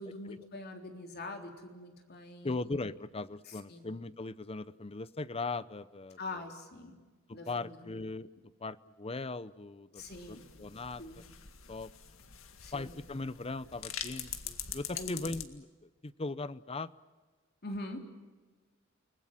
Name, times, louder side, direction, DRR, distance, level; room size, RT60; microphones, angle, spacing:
voice 1, 0.0-2.6 3.5-3.9 6.2-7.0 7.3-8.0 9.9-10.5 11.0-11.2 12.6-12.9 14.9-15.2 17.6-18.0, left 2 dB, 50° left, 3 dB, 3.7 m, -44 dB
voice 2, 2.4-6.2 7.3-8.3 8.6-10.0 10.3-11.2 11.7-11.9 12.7-16.9, left 3 dB, 30° left, 16 dB, 0.7 m, -39 dB
sound 1, 10.0-15.5, left 9 dB, 85° left, 2.0 m, -44 dB
30.0 x 20.0 x 7.5 m, 1.4 s
head